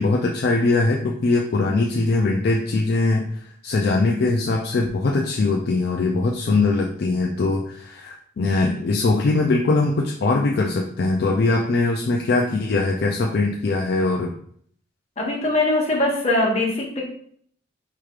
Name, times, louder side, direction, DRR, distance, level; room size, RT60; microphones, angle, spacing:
voice 1, 0.0-14.3, left 3 dB, 50° left, 0 dB, 0.4 m, -21 dB
voice 2, 15.2-17.0, left 2 dB, 35° left, -3 dB, 0.9 m, -21 dB
4.6 x 3.1 x 2.4 m, 0.62 s
head